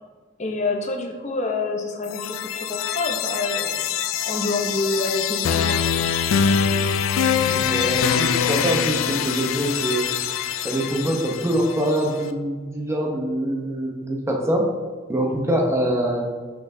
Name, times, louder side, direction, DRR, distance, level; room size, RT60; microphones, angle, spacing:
voice 1, 0.4-3.9 4.2-6.0, left 2 dB, 35° left, 2 dB, 0.8 m, -27 dB
sound 1, 2.0-12.0, left 7 dB, 90° left, 0.4 m, -24 dB
voice 2, 7.5-10.1 10.6-14.6 15.1-16.2, right 1 dB, 15° right, 0 dB, 0.8 m, -24 dB
6.6 x 5.8 x 2.7 m, 1.4 s
head